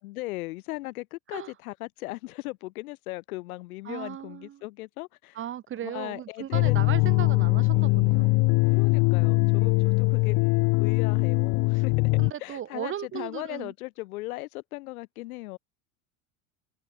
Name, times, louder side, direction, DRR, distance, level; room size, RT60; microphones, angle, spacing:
voice 1, 0.0-5.4 5.8-6.8 8.7-11.9 12.4-15.6, left 20 dB, 75° left, 7.6 m, -38 dB
voice 2, 3.8-4.6 5.3-8.3 12.2-13.7, right 11 dB, 30° right, 1.3 m, -36 dB
sound 1, 6.5-12.3, left 26 dB, 50° left, 1.4 m, -22 dB
supercardioid pair, 130°, 43 cm